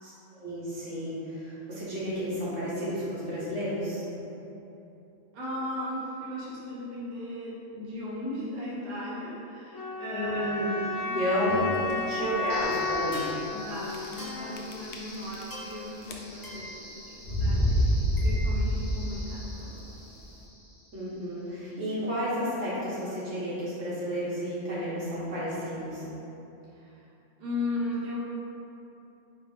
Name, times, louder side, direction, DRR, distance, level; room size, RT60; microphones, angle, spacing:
voice 1, 0.0-4.0 10.1-10.7 11.1-11.7 12.0-13.2 20.9-26.1, equal, 75° right, -9 dB, 1.6 m, -32 dB
voice 2, 5.3-10.5 11.0-11.3 11.8-11.9 12.2-12.4 13.5-19.9 26.7-27.0 27.4-28.2, left 1 dB, 40° right, -7 dB, 0.8 m, -37 dB
sound 1, 9.7-14.7, left 3 dB, 85° left, 1.2 m, -33 dB
sound 2, 11.5-11.9 12.5-12.6 12.9-13.0 13.9-14.3 14.6-15.7 16.0-16.6 17.2-19.2, equal, 70° left, 0.8 m, -27 dB
sound 3, 12.5-21.5, left 1 dB, 20° left, 0.8 m, -45 dB
4.6 x 3.2 x 3.3 m, 2.9 s
omnidirectional pair, 1.3 m